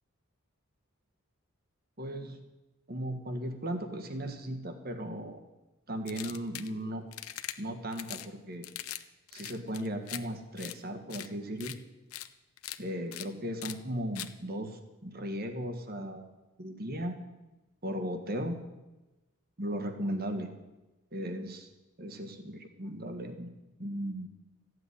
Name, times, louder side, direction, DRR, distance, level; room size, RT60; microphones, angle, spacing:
voice 1, 2.0-2.4 2.9-5.4 5.9-7.1 7.6-8.7 9.3-11.7 12.8-16.3 16.6-17.2 17.8-18.6 19.6-20.5 21.1-21.7 22.0-23.5 23.8-24.3, equal, 45° right, 7 dB, 1.6 m, -36 dB
sound 1, 6.1-6.7 7.1-7.6 7.9-8.3 8.6-9.0 9.3-10.2 10.6-10.8 11.1-11.3 11.6-11.8 12.1-12.3 12.6-12.8 13.1-13.3 13.6-13.8 14.2-14.3, left 13 dB, 85° left, 0.8 m, -40 dB
14.5 x 8.1 x 9.9 m, 1.1 s
head